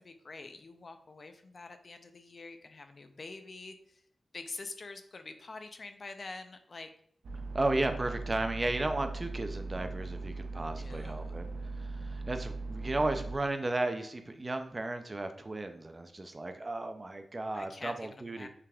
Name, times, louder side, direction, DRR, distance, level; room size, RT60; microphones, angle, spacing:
voice 1, 0.0-3.8 4.3-6.9 10.6-11.3 17.5-18.5, left 3 dB, 45° left, 8 dB, 0.4 m, -46 dB
sound 1, 7.2-13.4, right 3 dB, 85° right, 0.4 m, -39 dB
voice 2, 7.5-11.5 11.8-18.5, right 2 dB, 30° right, 7 dB, 0.4 m, -34 dB
5.7 x 3.4 x 2.3 m, 0.65 s
wide cardioid pair, 110°, 0 cm